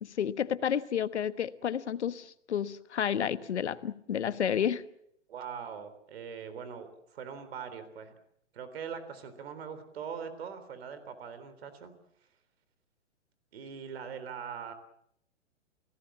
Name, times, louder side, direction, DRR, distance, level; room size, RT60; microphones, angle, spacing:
voice 1, 0.0-4.8, left 8 dB, 65° left, 14 dB, 1.3 m, -31 dB
voice 2, 5.3-8.1 8.5-11.9 13.5-14.7, right 7 dB, 55° right, 11 dB, 3.8 m, -42 dB
29.0 x 18.0 x 7.3 m, 0.71 s
figure-of-eight pair, 120°, 36 cm